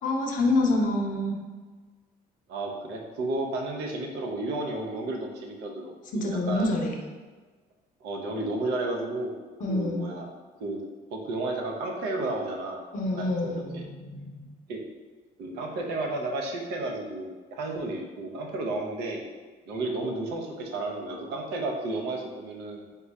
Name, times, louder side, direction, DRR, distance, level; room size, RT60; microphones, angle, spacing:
voice 1, 0.0-1.4 6.1-6.9 9.6-10.0 12.9-14.5, left 2 dB, 50° left, 1 dB, 0.7 m, -27 dB
voice 2, 2.5-6.8 8.0-9.3 9.7-10.3 10.6-10.8 11.1-12.8 13.1-13.8 14.7-14.8 15.4-19.2 19.7-22.8, right 2 dB, 80° right, 1 dB, 0.7 m, -32 dB
3.7 x 2.3 x 4.0 m, 1.4 s
cardioid pair, 110°, 17 cm